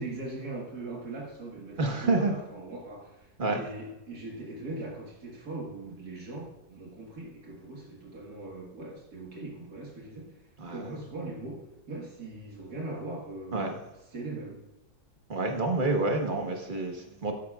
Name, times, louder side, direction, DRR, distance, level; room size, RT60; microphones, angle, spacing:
voice 1, 0.0-10.3 10.7-13.7 14.1-14.6, right 2 dB, 80° right, -3 dB, 2.3 m, -40 dB
voice 2, 1.8-2.3 3.4-3.6 10.6-11.0 13.5-13.7 15.3-17.3, right 2 dB, 35° right, 3 dB, 1.4 m, -28 dB
13.0 x 9.2 x 2.4 m, 1.0 s
omnidirectional pair, 1.6 m